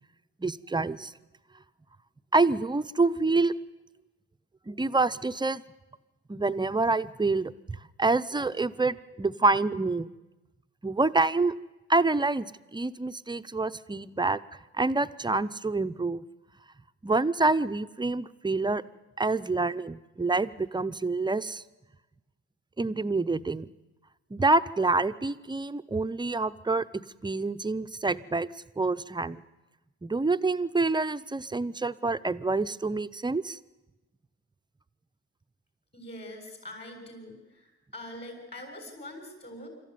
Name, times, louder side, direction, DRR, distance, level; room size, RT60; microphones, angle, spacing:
voice 1, 0.4-1.1 2.3-3.5 4.7-5.6 6.3-10.1 10.8-11.5 11.9-14.4 14.7-16.2 17.0-18.8 19.2-21.6 22.8-23.7 24.3-28.5 28.8-29.4 30.0-33.6, right 3 dB, 15° right, 12 dB, 0.7 m, -27 dB
voice 2, 35.9-39.7, left 1 dB, 35° left, 5 dB, 7.4 m, -43 dB
26.0 x 13.5 x 9.5 m, 1.1 s
cardioid pair, 90°, 30 cm